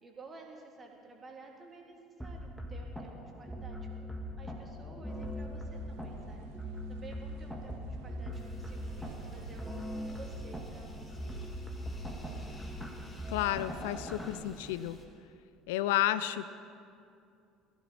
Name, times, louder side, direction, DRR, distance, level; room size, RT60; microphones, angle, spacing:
voice 1, 0.0-6.5 6.9-11.5, right 3 dB, 25° right, 0 dB, 2.8 m, -52 dB
sound 1, 2.2-14.3, left 1 dB, ahead, 2.1 m, -41 dB
sound 2, 5.1-12.9, right 11 dB, 60° right, 0.6 m, -50 dB
sound 3, 8.3-15.0, left 2 dB, 20° left, 2.9 m, -54 dB
voice 2, 13.3-15.0 15.7-16.5, left 13 dB, 65° left, 15 dB, 0.4 m, -31 dB
20.5 x 15.0 x 4.2 m, 2.5 s
figure-of-eight pair, 60°, 0 cm